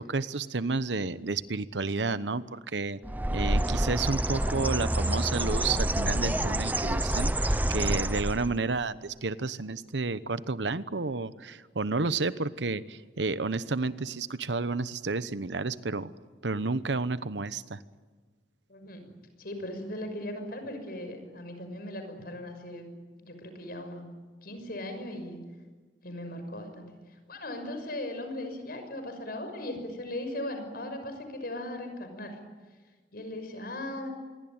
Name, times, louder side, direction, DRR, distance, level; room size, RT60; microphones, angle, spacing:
voice 1, 0.0-3.0 3.3-16.1 16.4-17.8, right 3 dB, 85° right, 14 dB, 1.0 m, -31 dB
Bird, 3.0-8.6, right 1 dB, 10° right, 0.7 m, -28 dB
voice 2, 18.7-19.0 19.4-22.9 23.2-24.0 24.4-25.4 26.0-26.9 27.3-32.4 33.1-34.1, left 1 dB, 60° left, 7 dB, 6.2 m, -38 dB
27.0 x 22.5 x 8.9 m, 1.4 s
head